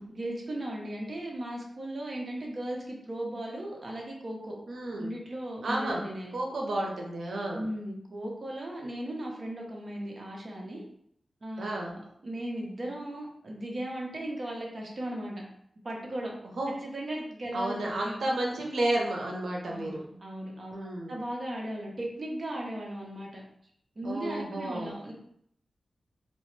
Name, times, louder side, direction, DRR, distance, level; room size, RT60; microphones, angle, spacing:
voice 1, 0.0-4.6 4.9-6.4 7.5-10.8 11.4-15.4 15.8-16.3 16.8-18.2 19.7-23.4 24.0-25.1, right 1 dB, 45° right, -1 dB, 0.7 m, -37 dB
voice 2, 4.7-5.1 5.6-6.0 6.3-7.6 11.6-11.9 16.6-16.7 17.5-20.0 20.7-21.2 24.0-25.0, right 1 dB, 80° right, -1 dB, 0.6 m, -31 dB
2.8 x 2.1 x 3.1 m, 0.71 s
wide cardioid pair, 105°, 0 cm